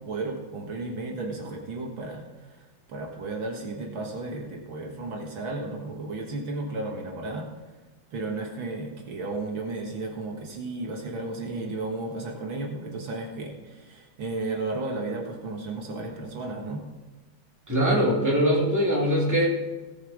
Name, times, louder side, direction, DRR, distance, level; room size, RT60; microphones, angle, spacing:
voice 1, 0.0-2.2 2.9-7.5 8.1-16.8, right 2 dB, 70° right, 0 dB, 2.3 m, -33 dB
voice 2, 17.7-19.5, equal, 10° right, -4 dB, 2.8 m, -22 dB
18.5 x 6.6 x 5.1 m, 1.2 s
omnidirectional pair, 2.3 m